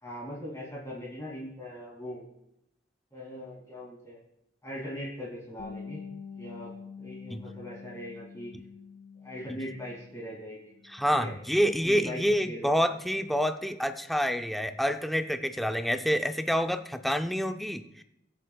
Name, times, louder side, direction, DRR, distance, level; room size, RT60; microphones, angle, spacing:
voice 1, 0.0-2.3 3.1-4.2 4.6-6.0 6.3-6.7 7.0-8.5 9.2-10.7 11.2-11.3 11.8-12.8, equal, 15° left, -5 dB, 2.6 m, -40 dB
Bass guitar, 5.6-10.3 10.6-11.8, left 5 dB, 65° left, 1.1 m, -46 dB
voice 2, 10.8-18.0, equal, ahead, 7 dB, 0.5 m, -28 dB
23.0 x 7.7 x 2.3 m, 0.80 s
head